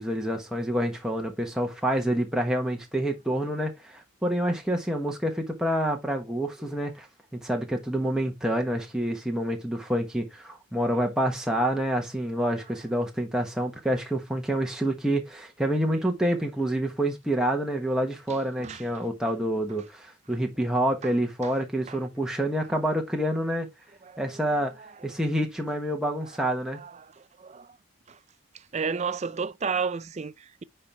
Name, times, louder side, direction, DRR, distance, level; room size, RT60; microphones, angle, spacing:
voice 1, 0.0-7.1 7.3-23.7 24.2-24.7 25.0-26.8, right 1 dB, 5° right, 1.2 m, -27 dB
voice 2, 18.3-19.1 21.0-21.1 21.4-21.5 21.9-22.0 24.0-24.9 26.7-27.7 28.1-28.2 28.5-30.6, right 5 dB, 30° right, 0.4 m, -34 dB
9.6 x 4.5 x 3.4 m
head